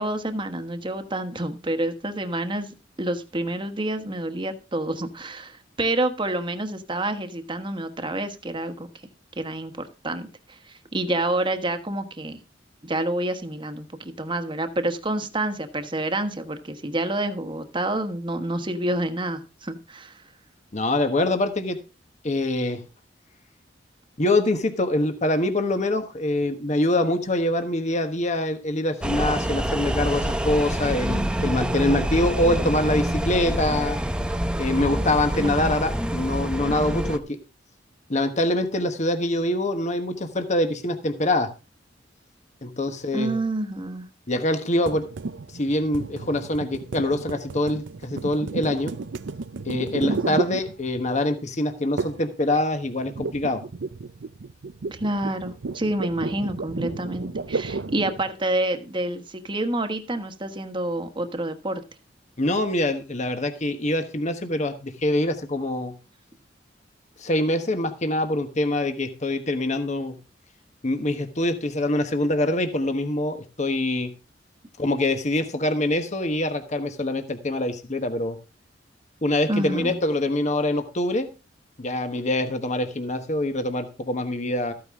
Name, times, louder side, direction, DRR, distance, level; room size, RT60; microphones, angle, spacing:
voice 1, 0.0-8.9 9.4-12.4 12.8-20.2 31.0-32.1 35.4-35.8 43.1-44.1 50.0-50.6 54.9-61.8 79.5-80.0, right 1 dB, 25° right, 8 dB, 1.3 m, -28 dB
voice 2, 20.7-21.8 22.2-22.8 24.2-34.0 34.6-37.4 38.1-41.5 42.6-43.4 44.3-45.0 45.5-48.9 49.6-53.6 62.4-65.9 67.2-70.2 70.8-74.1 74.8-78.4 79.2-81.3 81.8-84.7, left 1 dB, 40° left, 7 dB, 1.2 m, -24 dB
sound 1, 29.0-37.2, equal, 5° right, 0.7 m, -26 dB
sound 2, 44.9-51.2 52.0-52.3 52.6-58.3, right 4 dB, 85° right, 0.6 m, -33 dB
14.0 x 9.3 x 3.7 m, 0.30 s
head